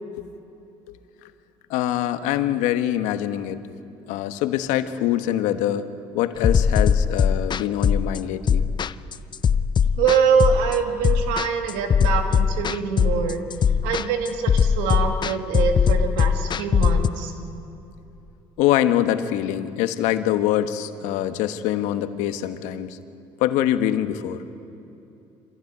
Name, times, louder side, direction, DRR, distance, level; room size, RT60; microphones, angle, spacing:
voice 1, 1.7-3.6 4.1-8.6 18.6-23.0 23.4-24.4, left 12 dB, 85° left, 10 dB, 1.2 m, -24 dB
sound 1, 6.4-17.1, left 7 dB, 40° left, 0.6 m, -20 dB
voice 2, 10.0-13.4 13.8-17.3, right 6 dB, 90° right, 5 dB, 2.4 m, -24 dB
26.0 x 16.0 x 9.4 m, 2.8 s
supercardioid pair, 80°, 12 cm